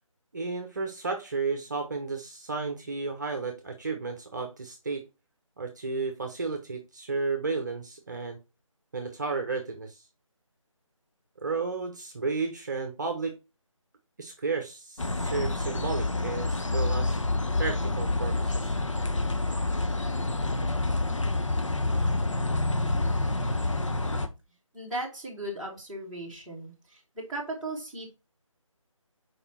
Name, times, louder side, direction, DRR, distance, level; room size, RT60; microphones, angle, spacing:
voice 1, 0.3-5.0 5.6-8.4 8.9-10.0 11.4-13.3 14.2-17.2 17.6-18.8, right 4 dB, 35° right, 5 dB, 1.0 m, -33 dB
sound 1, 15.0-24.3, left 2 dB, 65° left, 1.3 m, -28 dB
voice 2, 24.7-26.7 27.3-28.1, right 1 dB, ahead, -10 dB, 1.7 m, -36 dB
7.0 x 5.1 x 4.3 m, 0.28 s
figure-of-eight pair, 160°, 17 cm